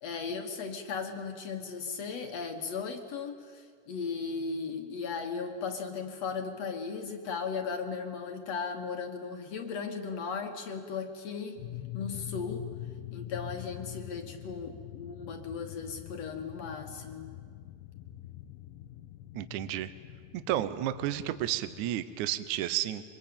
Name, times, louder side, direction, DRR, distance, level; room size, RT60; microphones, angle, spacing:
voice 1, 0.0-11.6 11.9-12.7 13.1-17.3, left 5 dB, 60° left, 5 dB, 2.2 m, -36 dB
sound 1, 11.6-21.9, left 12 dB, 80° left, 2.4 m, -44 dB
voice 2, 19.3-19.9 20.3-23.0, right 13 dB, 70° right, 13 dB, 2.0 m, -32 dB
24.5 x 21.5 x 8.6 m, 2.1 s
omnidirectional pair, 3.9 m